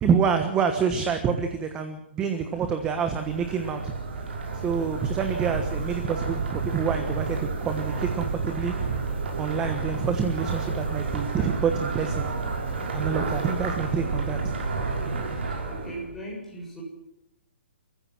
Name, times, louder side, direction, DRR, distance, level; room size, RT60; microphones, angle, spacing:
voice 1, 0.0-3.9 4.6-8.7 9.4-12.3 12.9-14.5, right 6 dB, 15° right, 7 dB, 1.3 m, -27 dB
sound 1, 2.6-16.1, right 4 dB, 80° right, 6.4 m, -30 dB
voice 2, 15.7-16.8, right 1 dB, 5° left, -4 dB, 6.9 m, -38 dB
29.5 x 15.0 x 6.2 m, 0.82 s
hypercardioid pair, 170°, 6 cm